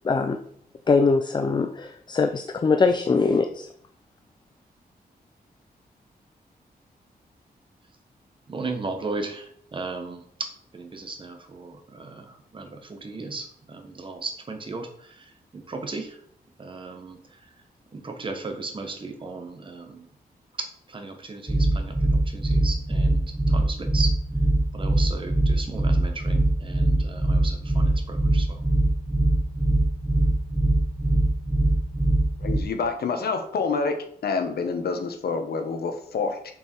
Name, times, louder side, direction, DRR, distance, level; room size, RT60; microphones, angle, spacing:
voice 1, 0.0-0.4 0.9-3.7, left 4 dB, 30° left, 7 dB, 0.5 m, -22 dB
voice 2, 8.5-16.2 16.6-17.6 17.9-20.1 20.6-24.2 24.7-28.6, right 3 dB, 30° right, 5 dB, 1.3 m, -36 dB
sound 1, 21.5-32.6, right 1 dB, 5° right, 1.2 m, -22 dB
voice 3, 32.4-34.0 34.2-36.5, left 4 dB, 80° left, 7 dB, 1.2 m, -27 dB
6.7 x 6.7 x 4.5 m, 0.63 s
wide cardioid pair, 160°, 16 cm